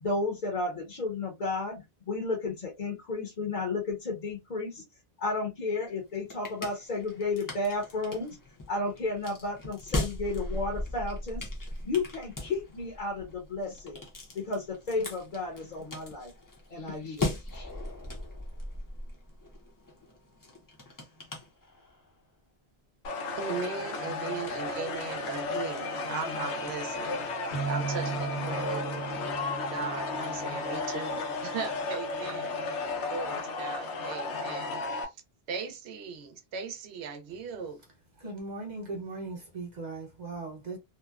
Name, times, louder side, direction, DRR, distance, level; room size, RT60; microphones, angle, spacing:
voice 1, 0.0-4.8 5.2-8.4 8.7-11.5 11.8-14.0 14.3-16.3 16.7-17.7, left 3 dB, 50° left, 0.8 m, -33 dB
sound 1, 5.9-22.1, left 2 dB, 25° left, 0.5 m, -39 dB
sound 2, 23.0-35.0, left 3 dB, 85° left, 0.9 m, -34 dB
voice 2, 23.4-27.4 27.7-32.8 33.1-35.1 35.5-37.8, right 5 dB, 85° right, 0.9 m, -38 dB
sound 3, 27.5-31.2, right 5 dB, 70° left, 1.2 m, -37 dB
voice 3, 38.2-40.8, right 3 dB, 45° right, 1.1 m, -38 dB
2.7 x 2.1 x 2.3 m
omnidirectional pair, 1.1 m